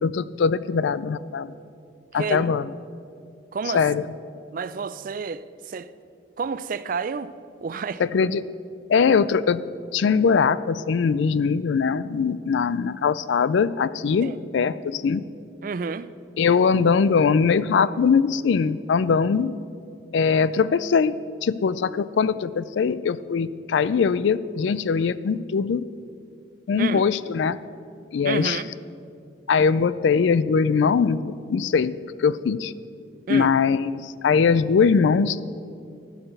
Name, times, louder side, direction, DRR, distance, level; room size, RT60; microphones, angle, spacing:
voice 1, 0.0-1.5 2.1-2.7 3.7-4.0 8.0-8.4 8.9-9.6 9.9-15.2 16.4-19.5 20.1-21.1 21.4-25.8 26.7-27.6 28.1-28.6 29.5-32.7 33.3-35.4, left 5 dB, 70° left, 0.3 m, -21 dB
voice 2, 2.1-2.6 3.5-3.9 4.5-5.9 6.4-7.3 7.6-8.0 14.2-14.4 15.6-16.1 26.8-27.0 28.2-28.7 33.3-33.5, right 5 dB, 45° right, 0.3 m, -30 dB
12.0 x 6.0 x 7.9 m
head